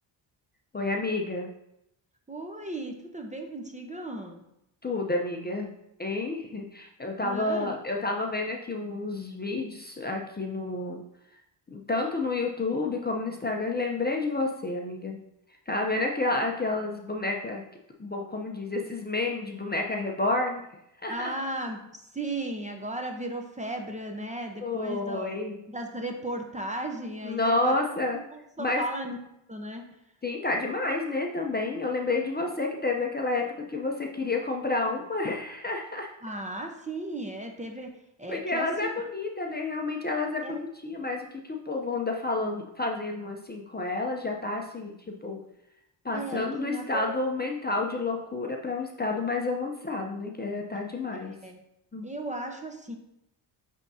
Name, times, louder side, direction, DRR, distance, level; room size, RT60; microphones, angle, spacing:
voice 1, 0.7-1.5 4.8-5.7 6.0-11.0 11.7-15.2 15.7-17.6 18.0-20.6 21.0-21.3 24.6-25.6 27.2-28.2 28.6-28.8 30.2-36.1 38.3-45.4 46.0-51.3 51.9-52.1, left 2 dB, 20° left, 1 dB, 0.7 m, -30 dB
voice 2, 2.3-4.4 7.2-7.7 21.1-25.4 25.7-27.7 28.3-29.2 29.5-29.8 36.2-37.9 38.2-38.9 40.4-40.6 46.1-47.1 51.1-51.6 52.0-53.0, right 1 dB, 15° right, 3 dB, 0.9 m, -36 dB
9.6 x 3.6 x 2.8 m, 0.81 s
supercardioid pair, 60°, 49 cm